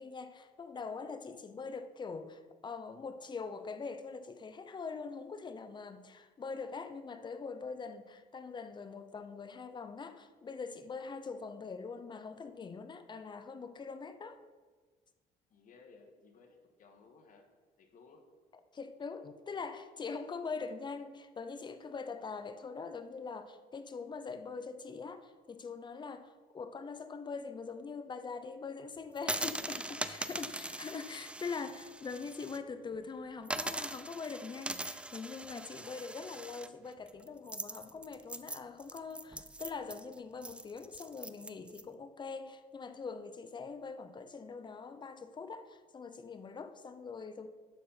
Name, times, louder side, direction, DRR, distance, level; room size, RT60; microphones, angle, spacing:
voice 1, 0.0-14.4 18.7-47.5, left 4 dB, 25° left, 10 dB, 0.7 m, -43 dB
voice 2, 15.5-17.5 17.8-18.3, left 4 dB, 50° left, 4 dB, 1.7 m, -59 dB
sound 1, 29.2-32.6 32.9-33.0 33.4-41.8, right 2 dB, 5° right, 0.4 m, -41 dB
11.5 x 4.3 x 5.7 m, 1.4 s
cardioid pair, 110°, 17 cm